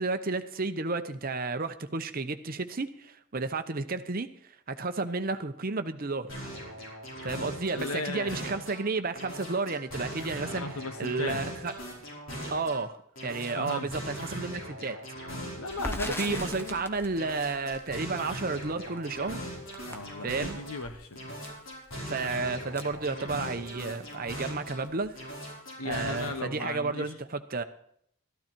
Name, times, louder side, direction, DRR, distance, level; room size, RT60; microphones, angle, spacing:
voice 1, 0.0-4.3 4.7-6.3 7.2-11.7 12.5-13.0 13.2-15.0 16.2-19.4 20.2-20.6 22.0-25.3 25.8-27.6, right 3 dB, 40° right, 9 dB, 0.8 m, -32 dB
sound 1, 6.3-8.8 9.2-12.8 13.2-16.8 17.2-20.8 21.2-24.8 25.2-26.3, equal, 60° left, 5.3 m, -40 dB
voice 2, 7.7-8.4 10.4-11.4 13.6-13.9 15.4-16.8 19.8-21.4 25.8-27.1, left 3 dB, 80° left, 9 dB, 1.2 m, -36 dB
Crackle, 15.7-23.8 24.1-24.2 24.5-25.3, left 1 dB, 10° left, 1.0 m, -43 dB
13.0 x 12.5 x 4.5 m, 0.68 s
head